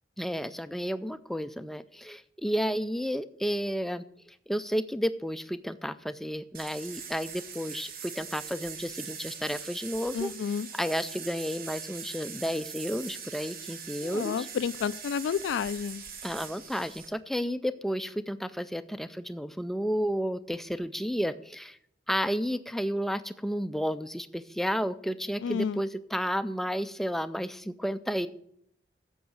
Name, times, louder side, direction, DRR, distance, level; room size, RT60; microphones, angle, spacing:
voice 1, 0.2-14.5 16.2-21.8 22.1-28.3, equal, ahead, 0.3 m, -32 dB
sound 1, 6.5-17.1, right 6 dB, 50° right, 1.1 m, -42 dB
voice 2, 10.1-10.7 14.0-16.0 25.4-25.8, left 7 dB, 85° left, 0.3 m, -30 dB
10.0 x 7.1 x 6.4 m
head